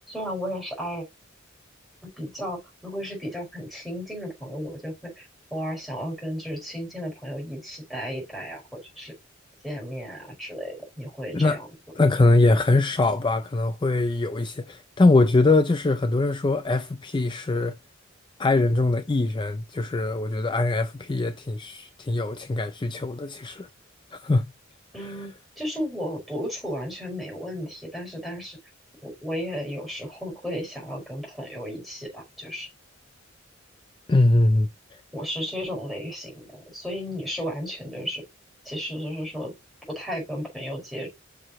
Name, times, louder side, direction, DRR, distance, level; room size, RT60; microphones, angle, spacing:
voice 1, 0.1-1.0 2.0-9.1 9.6-11.6 24.9-28.6 29.0-32.7 35.1-38.2 38.7-39.5 40.0-41.1, equal, ahead, 5.2 m, -34 dB
voice 2, 12.0-17.7 18.4-23.7 24.1-24.5 25.0-25.2 34.1-34.7, left 2 dB, 25° left, 0.4 m, -22 dB
7.6 x 6.0 x 3.0 m
head